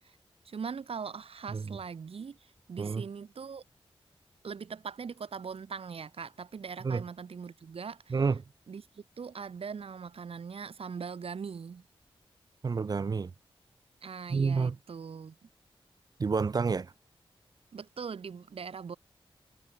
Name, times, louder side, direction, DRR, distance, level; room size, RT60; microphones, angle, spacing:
voice 1, 0.5-2.4 2.7-3.6 4.4-8.2 8.7-8.8 9.2-11.8 14.0-15.3 17.7-19.0, right 6 dB, 75° right, 3.5 m, -41 dB
voice 2, 8.1-8.4 12.6-13.3 14.3-14.8 16.2-16.9, right 5 dB, 40° right, 0.5 m, -29 dB
wide cardioid pair, 140°, 10 cm